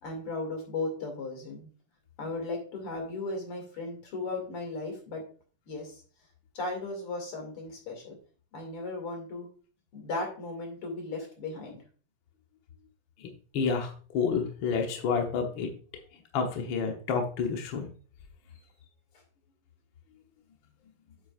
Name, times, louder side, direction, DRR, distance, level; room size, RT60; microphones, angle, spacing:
voice 1, 0.0-1.7 2.2-5.2 5.7-6.0 6.5-8.2 8.5-9.5 9.9-11.8, left 2 dB, 45° left, 3 dB, 3.2 m, -36 dB
voice 2, 13.5-15.7 16.3-17.9, left 5 dB, 70° left, 3 dB, 1.1 m, -29 dB
9.4 x 7.6 x 2.4 m, 0.39 s
omnidirectional pair, 3.7 m